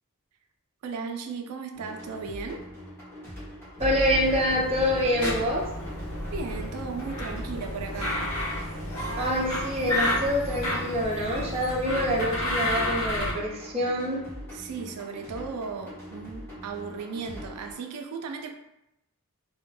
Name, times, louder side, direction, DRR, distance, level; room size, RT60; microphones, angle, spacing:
voice 1, 0.8-2.6 6.3-8.2 14.5-18.5, right 5 dB, 90° right, 5 dB, 0.4 m, -36 dB
sound 1, 1.7-17.7, equal, 10° left, 0.8 m, -43 dB
sound 2, 3.8-13.3, left 1 dB, 85° left, 0.8 m, -31 dB
voice 2, 3.8-5.6 9.1-14.2, equal, 25° right, -4 dB, 0.5 m, -26 dB
2.1 x 2.1 x 3.1 m, 0.86 s
head